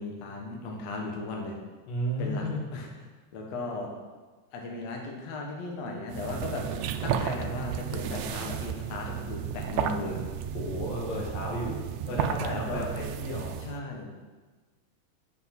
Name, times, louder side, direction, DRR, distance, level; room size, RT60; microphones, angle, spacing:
voice 1, 0.0-1.5 2.2-2.9 3.3-3.9 4.5-6.6 7.0-10.2 12.5-12.9 13.6-14.1, left 3 dB, 60° left, 0 dB, 2.2 m, -36 dB
voice 2, 1.9-2.6 10.5-13.5, equal, 80° left, -2 dB, 3.7 m, -33 dB
sound 1, 6.1-13.8, right 8 dB, 90° right, 1.6 m, -33 dB
8.2 x 8.0 x 5.9 m, 1.3 s
omnidirectional pair, 3.9 m